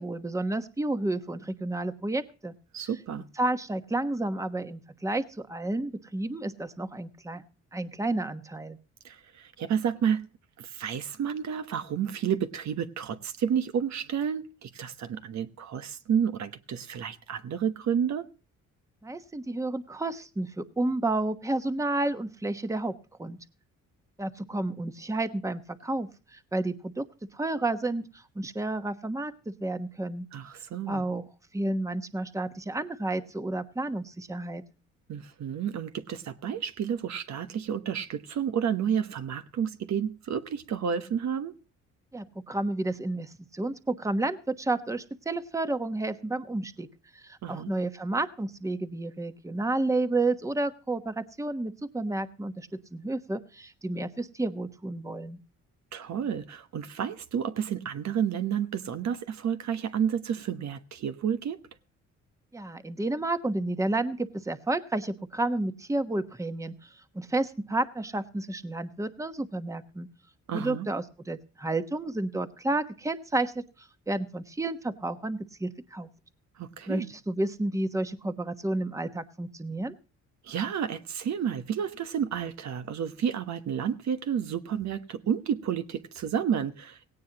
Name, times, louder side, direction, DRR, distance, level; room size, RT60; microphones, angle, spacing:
voice 1, 0.0-2.5 3.4-7.4 7.7-8.8 19.0-22.9 23.2-23.4 24.2-27.1 27.3-30.3 30.9-31.2 31.5-34.6 42.1-46.9 47.1-55.4 62.5-70.1 70.5-76.1 76.9-79.9, right 2 dB, 10° right, 1.1 m, -31 dB
voice 2, 2.7-3.2 9.0-10.2 10.6-18.3 30.3-31.0 35.1-41.6 47.4-47.7 55.9-61.6 70.5-70.9 76.6-77.1 80.4-87.1, right 8 dB, 65° right, 1.1 m, -30 dB
17.5 x 17.0 x 2.9 m
cardioid pair, 90°, 30 cm